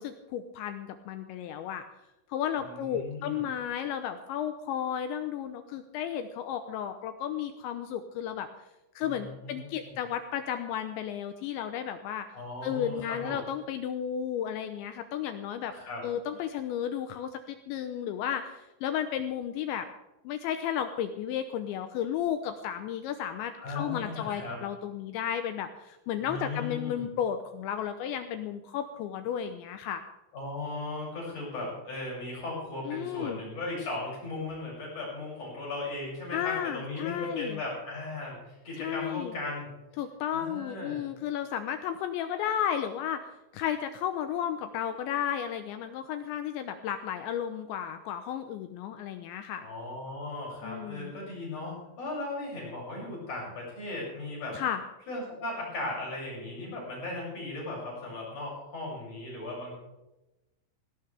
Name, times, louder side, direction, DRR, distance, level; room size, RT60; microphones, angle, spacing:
voice 1, 0.0-1.8 2.3-8.5 9.0-12.3 12.6-15.7 16.0-19.9 20.2-30.0 32.9-33.4 36.3-37.6 38.8-39.3 40.0-43.2 43.5-49.7 50.6-51.2 54.5-54.8, left 9 dB, 80° left, 8 dB, 2.7 m, -33 dB
voice 2, 2.6-3.4 9.0-10.0 12.3-13.4 15.7-16.0 23.6-24.6 26.2-27.1 30.3-39.7 40.3-41.0 49.6-54.6 55.1-59.7, left 2 dB, 35° left, -4 dB, 7.9 m, -37 dB
18.0 x 17.5 x 3.4 m, 0.97 s
omnidirectional pair, 5.9 m